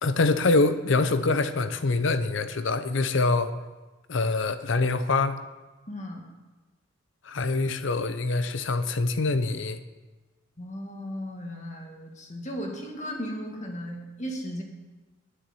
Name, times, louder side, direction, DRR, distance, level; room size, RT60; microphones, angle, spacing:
voice 1, 0.0-3.5 4.1-5.4 7.3-9.8, left 3 dB, 70° left, 11 dB, 0.7 m, -25 dB
voice 2, 5.9-6.2 10.6-14.6, equal, 40° left, 1 dB, 1.8 m, -36 dB
9.3 x 6.7 x 7.8 m, 1.2 s
head